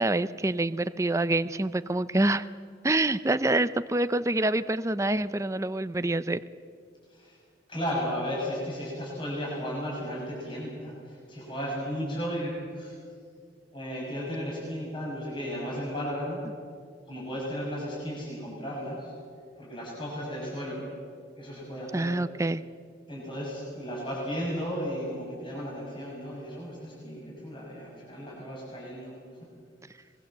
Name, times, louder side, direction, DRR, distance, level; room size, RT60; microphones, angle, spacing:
voice 1, 0.0-2.4 2.8-6.4 21.9-22.6, right 2 dB, 15° right, 13 dB, 0.5 m, -26 dB
voice 2, 7.7-12.9 13.7-16.4 17.1-19.1 19.6-20.8 21.4-22.1 23.1-29.1, equal, 25° left, -5 dB, 6.9 m, -34 dB
24.5 x 21.5 x 7.5 m, 2.2 s
head